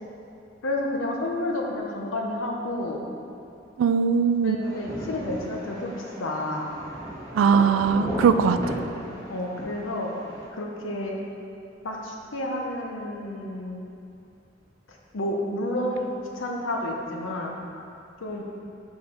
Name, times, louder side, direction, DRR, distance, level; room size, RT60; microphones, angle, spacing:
voice 1, 0.6-3.1 4.4-5.9 6.2-6.7 9.3-10.1 10.5-11.2 11.8-13.8 15.1-17.6 18.2-18.4, left 1 dB, 80° left, 0 dB, 0.7 m, -30 dB
voice 2, 3.8-4.6 7.4-8.6, right 6 dB, 80° right, 10 dB, 0.3 m, -20 dB
sound 1, 4.6-10.4, equal, 20° left, 1.4 m, -36 dB
4.8 x 4.7 x 5.4 m, 2.7 s
head